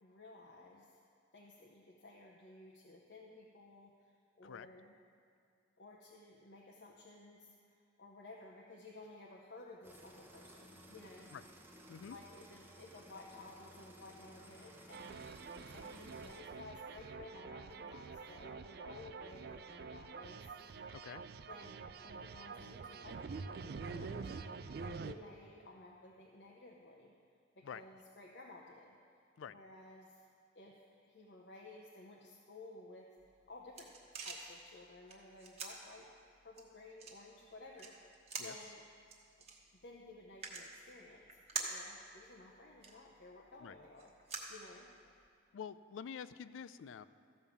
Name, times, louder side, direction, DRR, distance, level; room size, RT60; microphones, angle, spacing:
voice 1, 0.0-1.0 1.3-5.0 5.8-11.3 12.0-15.4 15.6-20.5 20.7-20.8 21.5-27.1 27.5-29.0 29.4-30.3 30.5-33.1 33.5-36.1 36.4-38.9 39.4-39.5 39.8-41.4 41.7-44.9, left 2 dB, 60° left, -2 dB, 0.8 m, -55 dB
sound 1, 9.8-16.4, equal, 10° right, 0.8 m, -57 dB
sound 2, 14.9-25.1, right 4 dB, 50° right, 0.3 m, -47 dB
voice 2, 20.9-21.2 27.6-27.8 29.4-29.6 38.4-38.5 43.6-43.7 45.5-47.0, left 7 dB, 85° left, 15 dB, 0.3 m, -47 dB
sound 3, 33.2-45.3, right 4 dB, 35° right, 1.1 m, -49 dB
14.0 x 5.4 x 7.1 m, 2.3 s
head